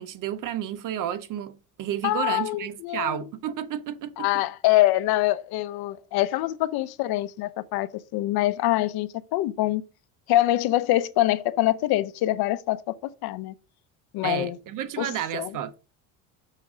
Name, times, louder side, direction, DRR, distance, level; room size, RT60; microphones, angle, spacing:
voice 1, 0.0-1.5 1.8-4.3 14.2-15.7, right 10 dB, 50° right, 0.7 m, -31 dB
voice 2, 2.0-3.2 4.2-9.8 10.3-13.5 14.1-14.6 15.0-15.5, left 15 dB, 70° left, 0.7 m, -25 dB
6.6 x 3.6 x 6.1 m
cardioid pair, 115°, 39 cm